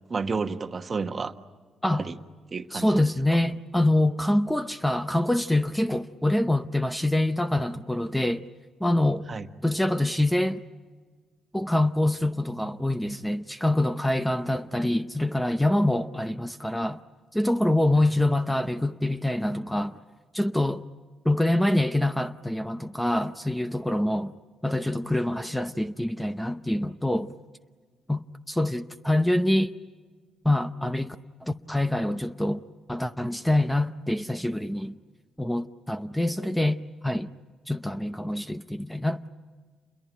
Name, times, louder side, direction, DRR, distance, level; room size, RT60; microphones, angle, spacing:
voice 1, 0.1-1.3 2.0-2.2 2.5-3.0 3.3-3.4 9.3-9.5, right 4 dB, 35° right, 1.2 m, -31 dB
voice 2, 2.7-8.4 8.8-9.2 9.6-10.6 11.5-17.0 17.3-20.0 20.3-20.8 21.2-24.3 24.6-27.3 28.1-29.7 30.4-31.2 31.4-32.6 32.9-35.0 35.4-37.3 37.7-39.3, left 1 dB, 5° left, 0.7 m, -25 dB
29.0 x 22.0 x 9.2 m
cardioid pair, 90°, 0 cm